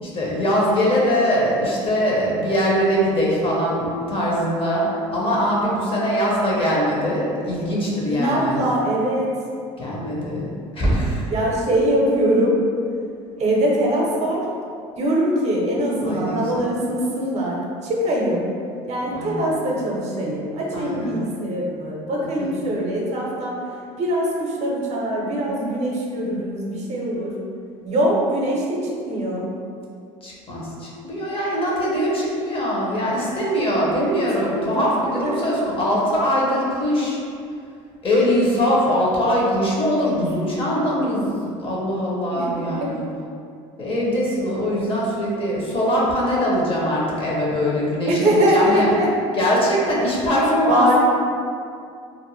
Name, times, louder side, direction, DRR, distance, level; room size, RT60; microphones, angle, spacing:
voice 1, 0.0-8.6 9.8-11.3 16.0-16.7 19.1-19.6 20.7-21.2 22.2-22.8 30.2-37.2 38.0-43.1 43.8-48.9 49.4-51.0, equal, 35° left, -4 dB, 0.8 m, -22 dB
voice 2, 8.1-9.3 11.3-12.6 13.4-14.4 15.0-18.5 18.9-23.6 24.0-27.3 27.8-29.5 33.8-34.2 34.7-34.8 35.2-35.4 42.3-42.9 48.1-49.1 50.7-51.0, right 1 dB, 45° right, -3 dB, 0.6 m, -22 dB
2.5 x 2.0 x 3.0 m, 2.4 s
supercardioid pair, 85°, 15 cm